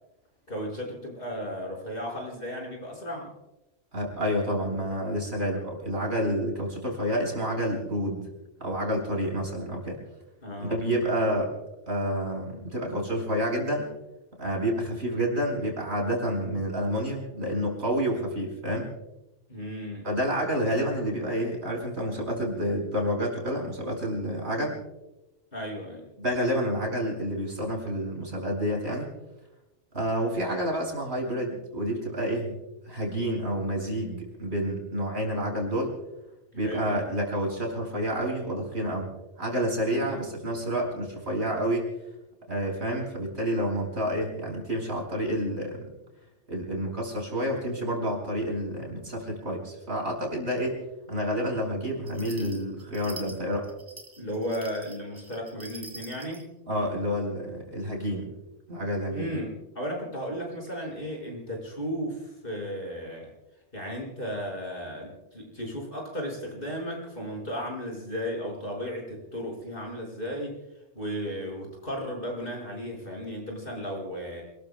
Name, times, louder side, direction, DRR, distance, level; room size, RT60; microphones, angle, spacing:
voice 1, 0.5-3.3 10.4-10.8 19.5-20.1 25.5-26.1 36.6-37.0 40.0-40.2 54.2-56.5 59.1-63.3 63.7-70.6 70.9-74.4, equal, 50° left, -1 dB, 5.8 m, -35 dB
voice 2, 3.9-8.3 8.6-10.0 10.6-11.5 11.9-13.9 14.4-18.9 20.0-24.8 26.2-29.1 29.9-32.6 32.9-35.9 36.5-39.1 39.4-41.9 42.5-45.9 46.5-50.8 51.1-53.7 56.7-58.3 58.7-59.3, equal, 65° right, 0 dB, 5.6 m, -29 dB
sound 1, 52.1-56.5, right 2 dB, 25° right, 2.7 m, -46 dB
29.0 x 21.0 x 2.2 m, 0.95 s
omnidirectional pair, 1.2 m